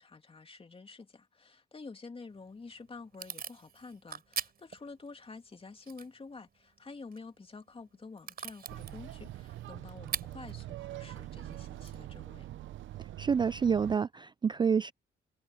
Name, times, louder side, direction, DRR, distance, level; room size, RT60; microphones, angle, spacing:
voice 1, 0.0-12.5, left 4 dB, 30° left, 2.9 m, -49 dB
Packing tape duct tape / Tearing, 2.3-13.1, right 7 dB, 50° right, 4.9 m, -46 dB
sound 1, 8.7-14.0, right 14 dB, 75° right, 0.8 m, -44 dB
voice 2, 13.2-14.9, right 6 dB, 25° right, 0.3 m, -28 dB
cardioid pair, 90°, 20 cm